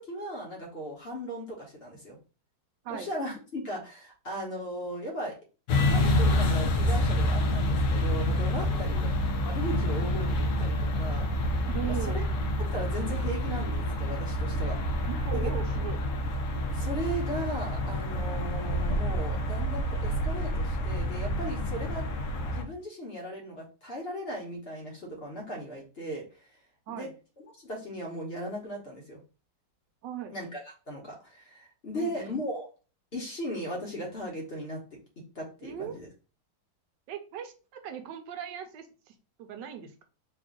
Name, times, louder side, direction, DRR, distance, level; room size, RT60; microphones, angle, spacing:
voice 1, 0.1-2.2 2.9-5.4 5.7-9.1 9.4-11.3 11.9-12.2 12.6-14.8 15.3-15.5 16.7-22.0 22.5-26.5 26.9-27.1 27.6-29.2 30.3-32.7 33.1-36.1, equal, 45° left, -2 dB, 1.0 m, -37 dB
sound 1, 5.7-22.6, left 1 dB, 65° left, 0.8 m, -28 dB
voice 2, 8.7-9.1 11.7-12.2 15.1-16.0 21.8-22.0 26.9-27.1 30.0-30.4 31.9-32.4 35.6-35.9 37.1-40.0, right 9 dB, 80° right, 7 dB, 1.2 m, -39 dB
3.3 x 2.4 x 3.6 m, 0.34 s
omnidirectional pair, 1.9 m